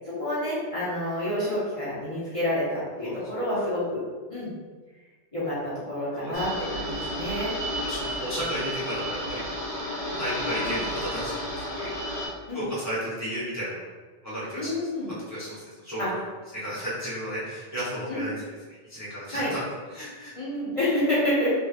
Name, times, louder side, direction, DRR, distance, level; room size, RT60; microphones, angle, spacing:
voice 1, 0.0-4.0 4.3-4.5 5.3-7.6 10.6-10.8 12.5-12.6 14.5-15.1 16.0-16.1 18.0-18.3 19.3-19.5 20.3-21.5, left 1 dB, 30° left, -10 dB, 1.0 m, -28 dB
sound 1, 6.3-12.3, equal, 75° left, 1.4 m, -32 dB
voice 2, 7.8-9.9 10.2-11.9 12.5-13.9 14.2-14.7 15.3-16.1 16.5-18.5 18.9-19.6 19.9-20.3, equal, 15° right, -9 dB, 0.9 m, -33 dB
3.2 x 3.2 x 2.4 m, 1.4 s
omnidirectional pair, 1.2 m